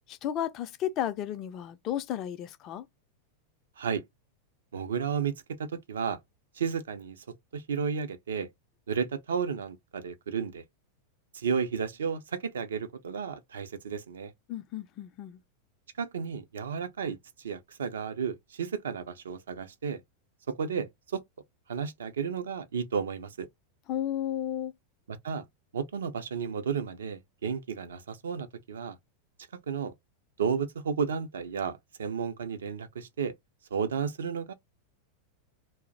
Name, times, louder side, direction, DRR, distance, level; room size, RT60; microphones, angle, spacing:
voice 1, 0.1-2.9 14.5-15.4 23.9-24.7, left 11 dB, 35° left, 0.4 m, -33 dB
voice 2, 4.7-5.3 5.6-6.2 6.6-7.2 7.5-8.5 8.9-10.6 11.3-14.3 16.0-17.2 17.4-20.0 20.5-21.2 21.7-23.5 25.1-25.4 25.7-29.0 29.7-29.9 30.4-33.3 33.7-34.5, right 6 dB, 65° right, 0.5 m, -32 dB
2.4 x 2.0 x 3.7 m
figure-of-eight pair, 90°, 0 cm